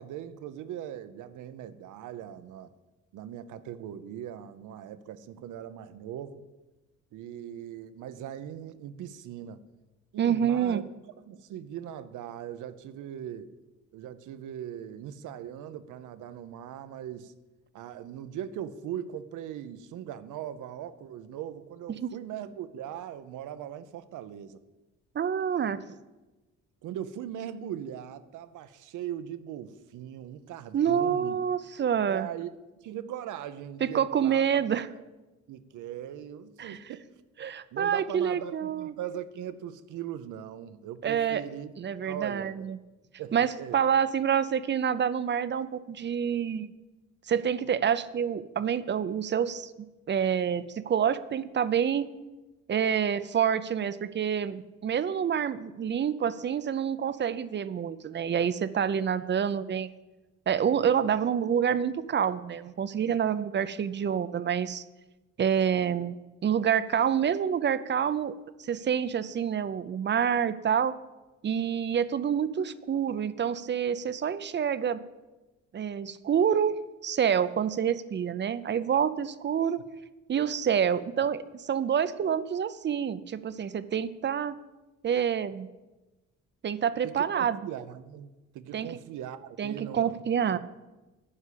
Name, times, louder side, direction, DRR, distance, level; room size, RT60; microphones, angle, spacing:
voice 1, 0.0-2.7 3.1-6.5 7.1-9.6 10.1-10.8 11.3-13.5 13.9-17.3 17.7-24.6 26.8-31.4 32.1-32.5 32.8-34.6 34.9-35.1 35.5-37.0 37.7-41.7 42.0-42.7 43.2-43.8 81.2-81.3 87.0-90.1, right 10 dB, 80° right, 0.7 m, -40 dB
voice 2, 10.2-10.8 22.0-22.1 25.1-25.8 30.7-32.3 33.8-34.9 36.6-36.8 37.4-38.9 41.0-41.5 41.8-42.8 43.3-46.7 47.3-49.7 50.1-52.1 52.7-59.9 60.5-64.8 65.4-66.1 66.4-68.3 68.6-70.9 71.4-75.0 75.7-79.8 80.3-84.5 85.0-85.7 86.6-87.6 88.7-88.9 89.6-90.6, right 8 dB, 35° right, 0.5 m, -27 dB
9.7 x 5.5 x 8.4 m
cardioid pair, 90°, 30 cm